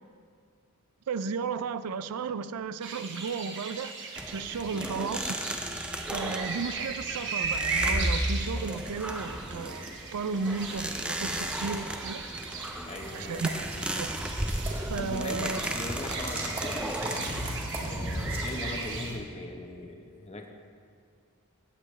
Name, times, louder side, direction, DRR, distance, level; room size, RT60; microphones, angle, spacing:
voice 1, 1.1-5.6 6.0-9.8 10.1-12.2 13.1-13.5 13.9-14.1 14.8-15.6, right 5 dB, 90° right, 13 dB, 0.4 m, -34 dB
sound 1, 2.8-19.1, right 4 dB, 55° right, 1.2 m, -37 dB
sound 2, 4.1-19.2, right 1 dB, 5° right, 0.4 m, -35 dB
voice 2, 6.1-6.4 12.8-13.5 15.0-17.3 17.8-20.5, left 2 dB, 30° left, 3 dB, 0.9 m, -40 dB
sound 3, 13.0-19.2, right 1 dB, 25° right, 1.9 m, -38 dB
16.5 x 7.6 x 3.3 m, 2.3 s
head